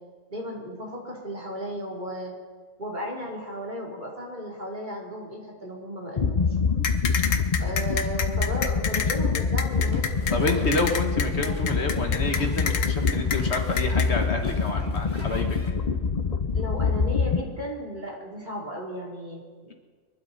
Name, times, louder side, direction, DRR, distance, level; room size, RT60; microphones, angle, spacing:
voice 1, 0.3-2.3 2.8-6.4 7.6-10.6 11.4-11.9 16.5-19.7, equal, 35° right, -2 dB, 3.1 m, -35 dB
sound 1, 6.2-17.4, left 5 dB, 40° left, 0.7 m, -25 dB
sound 2, 6.8-14.1, left 7 dB, 85° left, 1.3 m, -28 dB
sound 3, 9.7-15.7, left 1 dB, 10° left, 2.4 m, -42 dB
voice 2, 10.3-15.6, left 2 dB, 60° left, 4 dB, 1.6 m, -28 dB
23.5 x 12.0 x 4.0 m, 1.5 s
omnidirectional pair, 1.3 m